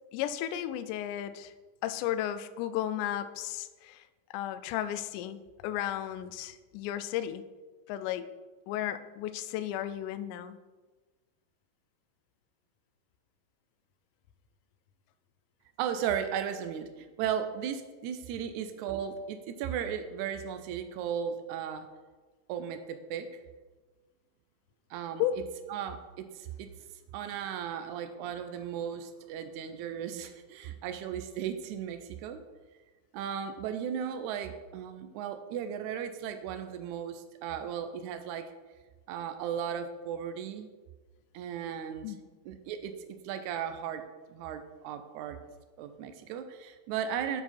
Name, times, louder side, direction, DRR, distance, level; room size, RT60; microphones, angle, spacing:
voice 1, 0.1-1.5 1.8-4.0 4.3-7.4 7.9-8.4 8.7-10.6 25.2-25.4 42.0-42.2, left 11 dB, 85° left, 12 dB, 1.8 m, -34 dB
voice 2, 15.8-21.9 22.5-23.4 24.9-25.2 25.7-26.7 27.1-32.4 33.1-38.5 39.1-40.7 41.3-42.1 42.4-42.9 43.2-44.0 44.3-45.4 45.8-47.4, right 8 dB, 85° right, 8 dB, 1.7 m, -36 dB
12.5 x 4.6 x 4.2 m, 1.3 s
omnidirectional pair, 4.1 m